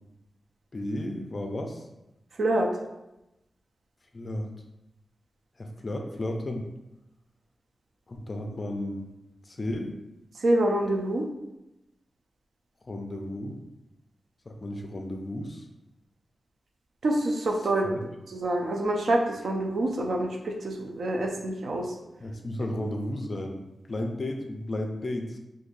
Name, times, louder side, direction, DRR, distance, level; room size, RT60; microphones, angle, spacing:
voice 1, 0.7-1.8 4.1-4.5 5.6-6.7 8.1-9.1 9.5-10.0 12.9-13.6 14.5-15.7 17.8-18.0 22.2-23.6 23.9-25.4, left 1 dB, 35° left, 3 dB, 0.4 m, -33 dB
voice 2, 10.4-11.3 17.0-17.9 18.3-21.9, right 1 dB, 70° right, 1 dB, 0.5 m, -26 dB
2.6 x 2.6 x 3.8 m, 0.94 s
wide cardioid pair, 130°, 0 cm